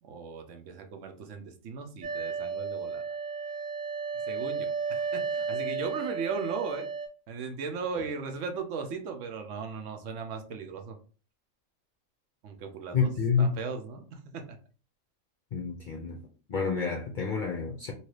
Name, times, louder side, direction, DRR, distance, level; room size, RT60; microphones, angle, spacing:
voice 1, 0.0-3.0 4.2-6.9 7.3-11.0 12.4-13.1 13.4-14.6, right 5 dB, 70° right, 0.9 m, -37 dB
sound 1, 2.0-7.1, right 5 dB, 45° right, 0.7 m, -33 dB
voice 2, 12.9-13.5 15.5-16.2 16.5-17.9, left 5 dB, 55° left, 0.5 m, -28 dB
2.9 x 2.7 x 3.1 m
omnidirectional pair, 1.4 m